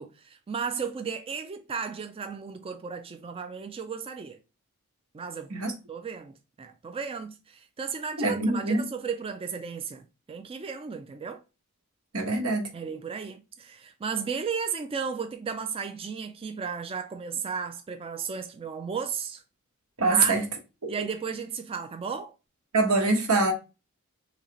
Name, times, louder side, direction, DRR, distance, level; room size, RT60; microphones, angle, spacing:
voice 1, 0.0-4.4 5.1-5.5 5.9-11.4 12.7-19.4 20.0-20.4 20.9-22.3, right 6 dB, 25° right, 0.3 m, -34 dB
voice 2, 8.2-8.9 12.1-12.7 20.0-20.4 20.8-20.9 22.7-23.5, right 3 dB, 85° right, 1.2 m, -24 dB
3.9 x 3.2 x 2.9 m
head